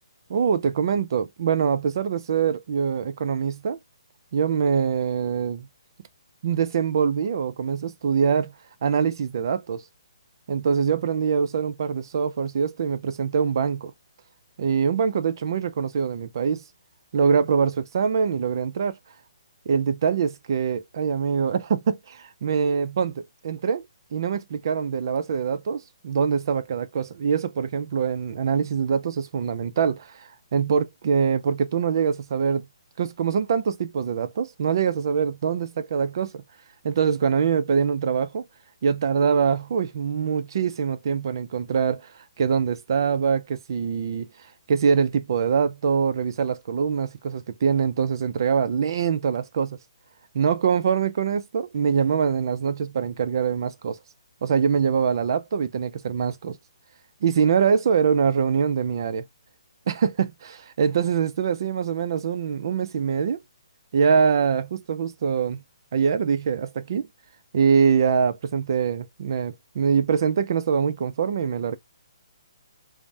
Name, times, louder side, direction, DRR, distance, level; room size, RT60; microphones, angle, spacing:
voice 1, 0.3-3.8 4.3-5.7 6.4-8.5 8.8-9.8 10.5-13.9 14.6-16.6 17.1-18.9 19.7-23.9 24.1-32.7 33.0-36.4 36.8-38.4 38.8-42.1 42.4-44.3 44.7-49.8 50.3-54.0 54.4-56.6 57.2-59.3 59.9-63.4 63.9-65.6 65.9-67.1 67.5-71.8, right 6 dB, 45° right, 0.4 m, -24 dB
3.2 x 2.0 x 2.5 m
hypercardioid pair, 170°, 3 cm